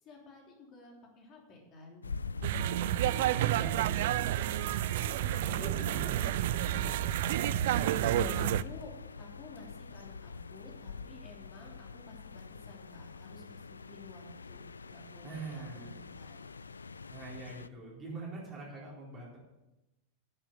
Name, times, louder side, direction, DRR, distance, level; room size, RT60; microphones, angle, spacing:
voice 1, 0.0-2.0 3.1-3.7 5.0-6.0 6.8-6.9 7.9-8.9 9.2-13.6 13.9-16.5, left 3 dB, 35° left, 0 dB, 3.2 m, -52 dB
sound 1, 2.0-17.7, left 5 dB, 75° left, 0.3 m, -45 dB
sound 2, 2.4-8.6, right 13 dB, 55° right, 0.3 m, -30 dB
voice 2, 3.5-4.7 5.2-6.2 6.5-6.8 15.2-15.9 17.1-19.4, right 3 dB, 25° right, -4 dB, 4.1 m, -44 dB
11.0 x 7.4 x 6.7 m, 0.99 s
figure-of-eight pair, 90°, 0 cm